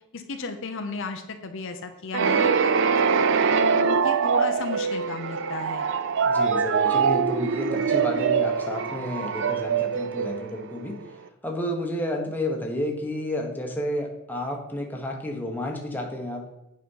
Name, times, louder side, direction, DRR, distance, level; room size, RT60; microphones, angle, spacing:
voice 1, 0.1-2.8 3.5-5.9, left 4 dB, 60° left, 6 dB, 0.8 m, -34 dB
sound 1, 2.1-10.9, right 6 dB, 60° right, 0.4 m, -23 dB
voice 2, 6.2-11.0 11.4-16.4, left 1 dB, 10° left, 1 dB, 1.2 m, -31 dB
8.5 x 5.0 x 5.6 m, 0.93 s
head